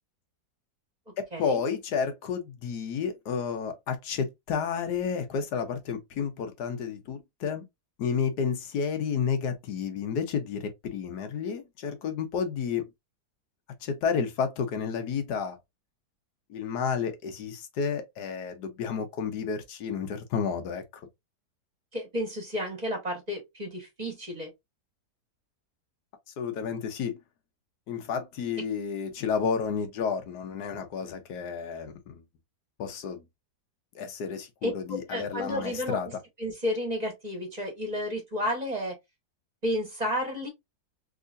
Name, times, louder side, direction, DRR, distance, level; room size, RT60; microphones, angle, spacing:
voice 1, 1.2-7.6 8.0-12.9 13.8-15.6 16.5-20.8 26.4-27.2 27.9-32.2 32.8-33.2 33.9-36.1, left 6 dB, 80° left, 1.4 m, -31 dB
voice 2, 21.9-24.5 34.6-36.0 36.4-39.0 39.6-40.5, equal, 25° right, 1.5 m, -32 dB
3.6 x 2.9 x 2.5 m
omnidirectional pair, 1.7 m